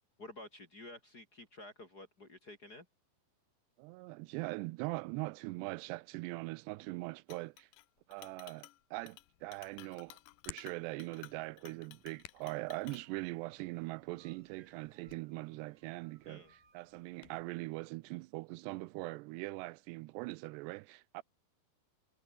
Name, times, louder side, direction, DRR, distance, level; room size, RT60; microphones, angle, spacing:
voice 1, 0.2-2.9 16.3-16.5, left 2 dB, 30° left, 2.3 m, -51 dB
voice 2, 3.8-7.7 8.1-10.2 10.5-21.2, right 22 dB, 85° right, 2.7 m, -42 dB
Chink clink, 7.3-7.9 8.1-8.8 9.1-9.3 9.5-13.1, left 18 dB, 85° left, 1.9 m, -55 dB
Hands, 9.0-17.4, left 14 dB, 70° left, 2.6 m, -58 dB
sound 1, 12.8-17.1, right 5 dB, 30° right, 3.5 m, -71 dB
omnidirectional pair, 4.9 m